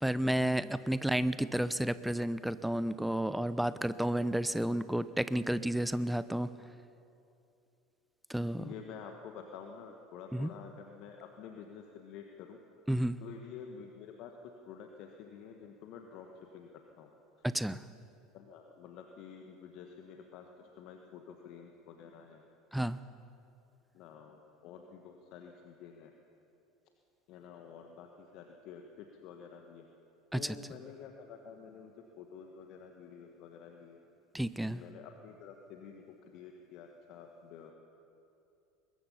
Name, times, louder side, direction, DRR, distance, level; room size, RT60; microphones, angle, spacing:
voice 1, 0.0-6.5 8.3-8.7 10.3-10.5 12.9-13.2 17.4-17.8 22.7-23.0 30.3-30.6 34.3-34.8, right 1 dB, 5° right, 15 dB, 0.8 m, -31 dB
voice 2, 8.5-12.6 13.2-14.3 14.7-16.3 16.5-16.7 17.0-17.1 18.3-22.4 23.9-26.1 27.3-29.9 30.3-34.0 34.7-37.7, left 7 dB, 55° left, 3 dB, 1.6 m, -49 dB
22.5 x 20.5 x 5.7 m, 2.7 s
figure-of-eight pair, 70°, 0 cm